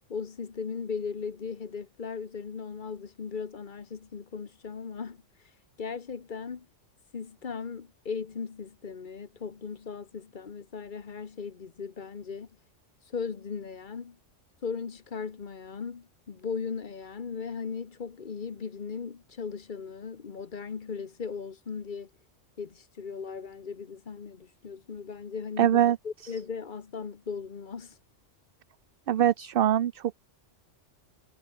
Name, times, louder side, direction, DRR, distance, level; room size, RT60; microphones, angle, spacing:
voice 1, 0.1-5.2 5.8-6.7 7.1-12.5 13.1-14.2 14.6-22.1 22.6-28.0, left 5 dB, 45° left, 1.1 m, -37 dB
voice 2, 25.6-26.0 29.1-30.2, right 11 dB, 55° right, 0.7 m, -23 dB
omnidirectional pair, 1.3 m